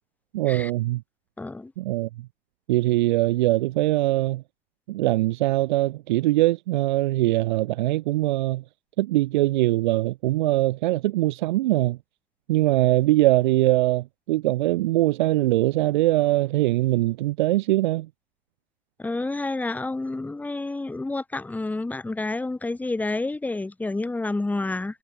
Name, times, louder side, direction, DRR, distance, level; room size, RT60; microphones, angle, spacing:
voice 1, 0.3-1.0 1.8-2.3 2.7-4.4 4.9-8.6 9.0-12.0 12.5-18.1, right 17 dB, 50° right, 2.0 m, -22 dB
voice 2, 1.4-1.7 19.0-25.0, left 2 dB, 5° left, 1.6 m, -29 dB
figure-of-eight pair, 95°, 30 cm